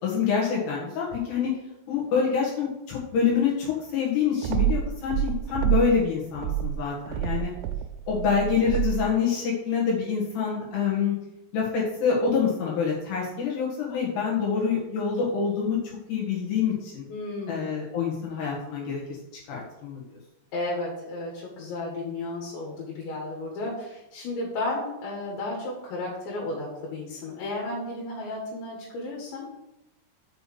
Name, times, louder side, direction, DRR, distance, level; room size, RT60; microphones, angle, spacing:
voice 1, 0.0-1.5 1.9-7.5 8.1-11.2 11.5-17.1 17.5-19.0 19.5-20.0, left 6 dB, 70° left, -4 dB, 3.6 m, -26 dB
sound 1, 4.4-6.0 6.3-9.1, right 12 dB, 90° right, 2.8 m, -27 dB
voice 2, 17.1-17.8 20.5-29.5, left 2 dB, 90° left, -2 dB, 4.0 m, -33 dB
6.8 x 5.9 x 6.8 m, 0.91 s
omnidirectional pair, 5.0 m